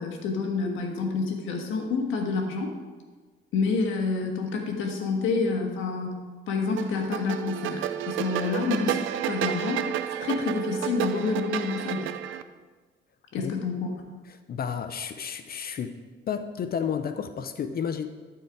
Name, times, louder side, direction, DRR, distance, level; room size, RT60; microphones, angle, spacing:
voice 1, 0.0-2.7 3.5-9.9 10.2-12.1 13.3-13.9, left 4 dB, 85° left, 2 dB, 1.4 m, -28 dB
sound 1, 6.8-12.4, right 11 dB, 85° right, 0.5 m, -31 dB
voice 2, 14.3-16.0 16.3-18.1, left 7 dB, 50° left, 9 dB, 0.6 m, -31 dB
12.0 x 4.6 x 4.7 m, 1.4 s
cardioid pair, 90°, 20 cm